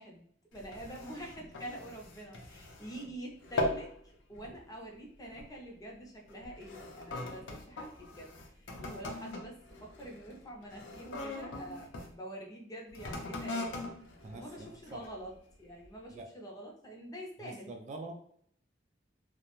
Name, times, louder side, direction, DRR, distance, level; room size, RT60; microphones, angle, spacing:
voice 1, 0.0-3.9 4.3-13.8 14.3-15.3 15.6-17.7, right 1 dB, 20° left, -1 dB, 0.5 m, -46 dB
sound 1, 0.5-3.1 3.4-3.9 4.3-4.6 5.3-5.6 6.3-12.1 12.9-15.2 15.8-15.9, left 2 dB, 90° left, 0.5 m, -40 dB
voice 2, 14.2-15.1 16.1-16.3 17.4-18.2, right 2 dB, 40° right, 4 dB, 0.3 m, -45 dB
2.3 x 2.0 x 2.9 m, 0.64 s
head